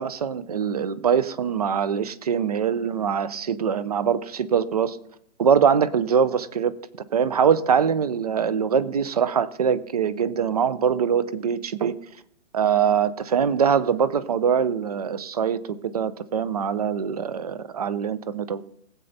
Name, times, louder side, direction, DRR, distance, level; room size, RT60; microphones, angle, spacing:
voice 1, 0.0-5.0 5.4-6.7 7.1-11.9 12.5-18.6, right 7 dB, 35° right, 17 dB, 0.5 m, -23 dB
19.5 x 7.8 x 4.0 m, 0.73 s
hypercardioid pair, 175°, 36 cm